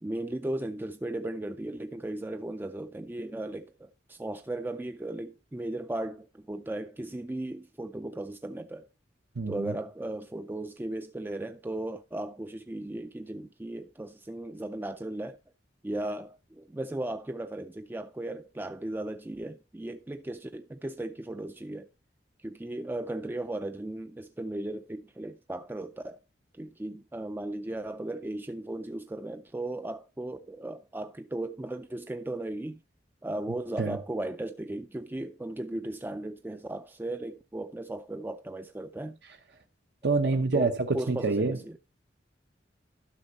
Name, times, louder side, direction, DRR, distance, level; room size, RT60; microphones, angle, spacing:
voice 1, 0.0-8.9 9.5-15.4 15.8-21.9 22.4-26.2 26.5-32.8 33.2-39.2 40.2-41.8, right 1 dB, 10° right, 0.4 m, -36 dB
voice 2, 9.4-9.7 33.8-34.0 40.0-41.6, right 3 dB, 65° right, 0.9 m, -27 dB
11.5 x 6.2 x 4.0 m
head